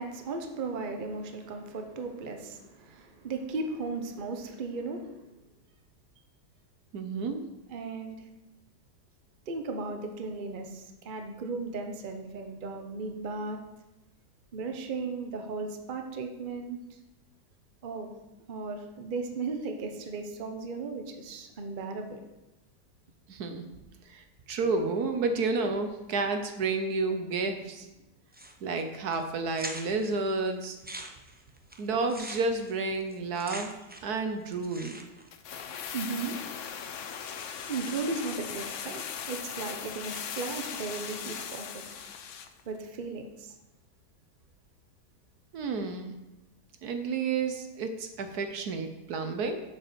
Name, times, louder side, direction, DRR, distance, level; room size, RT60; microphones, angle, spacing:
voice 1, 0.0-5.2 7.7-8.2 9.5-13.6 14.5-16.8 17.8-18.1 18.5-22.2 35.9-36.3 37.7-41.8 42.7-43.5, right 4 dB, 35° right, 5 dB, 0.9 m, -36 dB
voice 2, 6.9-7.4 23.3-23.6 24.1-27.9 28.6-30.8 31.8-33.7 34.0-35.0 45.5-46.1 46.8-49.6, right 3 dB, 65° right, 7 dB, 1.4 m, -31 dB
sound 1, 28.3-28.8 29.1-29.2 29.5-30.1 30.6-34.2 34.4-35.3, right 1 dB, 10° right, 0.4 m, -42 dB
sound 2, 35.3-42.6 42.9-43.0, left 7 dB, 60° left, 0.9 m, -39 dB
7.6 x 6.7 x 6.8 m, 1.0 s
omnidirectional pair, 1.8 m